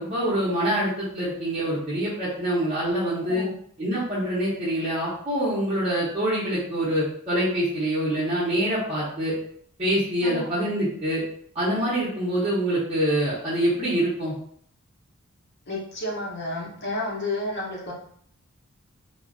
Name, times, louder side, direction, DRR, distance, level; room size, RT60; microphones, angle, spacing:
voice 1, 0.0-3.4 3.8-9.3 9.8-11.2 11.5-14.3, right 1 dB, 30° right, -12 dB, 0.8 m, -25 dB
voice 2, 3.2-3.5 10.2-10.5 15.7-17.9, left 1 dB, 50° left, -3 dB, 0.8 m, -31 dB
2.5 x 2.1 x 2.5 m, 0.62 s
head